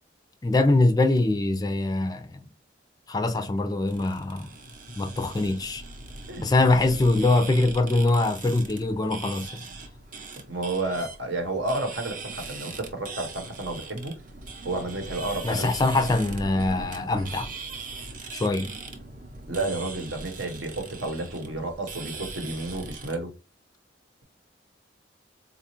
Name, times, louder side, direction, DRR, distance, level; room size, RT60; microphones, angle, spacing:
voice 1, 0.4-2.5 3.1-4.5 5.0-5.8 6.4-9.6 15.4-17.5 18.3-18.7, left 2 dB, 20° left, 0.3 m, -23 dB
sound 1, 3.9-23.2, right 3 dB, 45° right, 0.6 m, -40 dB
voice 2, 10.5-14.1 14.6-15.7 19.5-23.3, right 2 dB, 75° right, 0.9 m, -31 dB
4.0 x 2.3 x 2.8 m
head